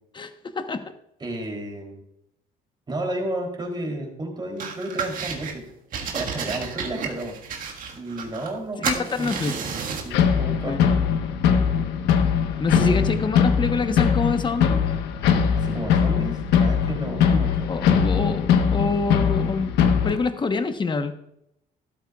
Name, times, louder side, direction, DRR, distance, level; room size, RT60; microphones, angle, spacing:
voice 1, 0.1-0.8 8.8-9.6 10.6-10.8 12.6-14.9 17.7-19.7 20.0-21.1, left 4 dB, 25° left, 8 dB, 1.1 m, -26 dB
voice 2, 1.2-2.0 2.9-5.6 6.1-7.3 7.9-9.3 10.0-11.0 12.7-13.2 15.6-17.7, right 1 dB, 25° right, 2 dB, 3.3 m, -32 dB
sound 1, 4.6-5.5 5.9-8.6 8.8-10.1, right 6 dB, 55° right, 1.7 m, -31 dB
sound 2, 10.1-20.2, left 7 dB, 85° left, 1.2 m, -21 dB
12.5 x 12.5 x 2.4 m, 0.78 s
cardioid pair, 110°, 17 cm